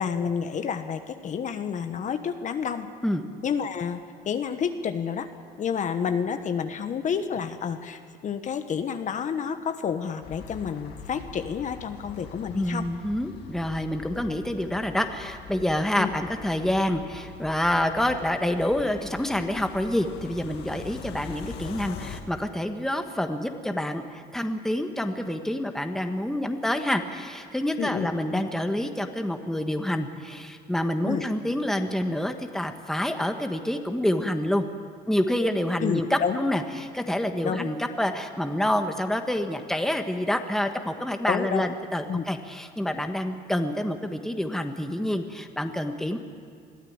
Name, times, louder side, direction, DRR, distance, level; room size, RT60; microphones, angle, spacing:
voice 1, 0.0-2.9 3.4-5.3 5.6-12.9 16.0-16.1 27.8-28.4 31.0-31.2 35.8-36.4 37.4-37.7 41.3-41.7 42.1-42.3, left 7 dB, 45° left, 8 dB, 1.2 m, -29 dB
sound 1, 10.2-22.2, left 6 dB, 80° left, 1.9 m, -43 dB
voice 2, 12.5-34.7 35.1-46.2, left 1 dB, ahead, 6 dB, 1.4 m, -27 dB
22.0 x 14.0 x 8.8 m, 2.4 s
cardioid pair, 110°, 17 cm